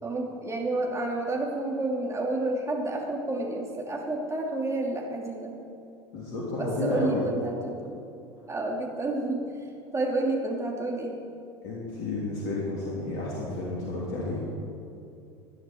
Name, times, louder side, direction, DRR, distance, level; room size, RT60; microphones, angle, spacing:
voice 1, 0.0-5.5 6.6-7.9 8.5-11.2, right 2 dB, 20° right, 0 dB, 2.9 m, -30 dB
voice 2, 6.1-7.2 11.6-14.4, left 2 dB, 60° left, -5 dB, 3.2 m, -31 dB
18.0 x 10.5 x 4.6 m, 2.7 s
figure-of-eight pair, 75°, 15 cm